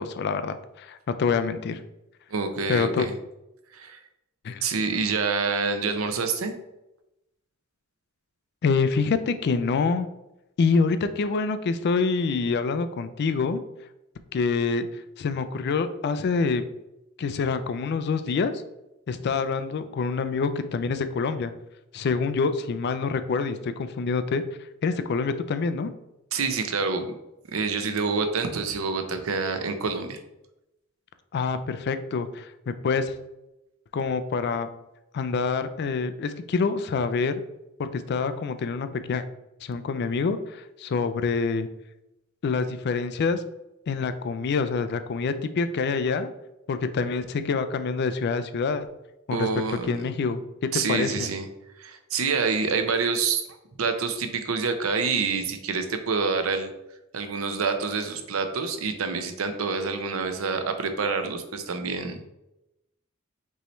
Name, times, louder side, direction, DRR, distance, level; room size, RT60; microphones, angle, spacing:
voice 1, 0.0-1.8 2.7-3.1 4.4-4.6 8.6-10.1 10.6-13.6 14.3-14.9 15.2-16.6 17.2-18.5 19.1-21.5 21.9-24.4 24.8-25.9 31.3-33.1 33.9-34.7 35.1-37.3 37.8-39.2 39.6-41.7 42.4-43.4 43.9-46.3 46.7-48.9 49.3-49.5 49.9-50.4 50.9-51.3, left 4 dB, 55° left, 11 dB, 0.4 m, -26 dB
voice 2, 2.3-3.1 3.7-4.0 4.6-6.6 26.3-27.0 27.5-30.2 49.3-50.0 50.7-51.5 51.8-53.4 53.8-56.7 57.1-62.3, right 4 dB, 80° right, 7 dB, 0.6 m, -27 dB
5.4 x 3.1 x 3.0 m, 0.92 s
head